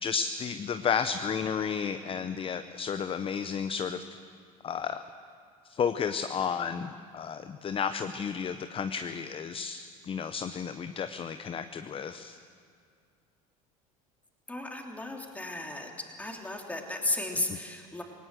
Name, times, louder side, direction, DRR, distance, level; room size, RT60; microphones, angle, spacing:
voice 1, 0.0-4.0 4.6-5.0 5.7-12.4 17.5-17.6, left 7 dB, 30° left, 9 dB, 0.8 m, -32 dB
voice 2, 14.5-15.9 16.2-18.0, left 1 dB, 10° left, 1 dB, 3.3 m, -34 dB
18.5 x 18.0 x 7.7 m, 2.2 s
hypercardioid pair, 85°, 18 cm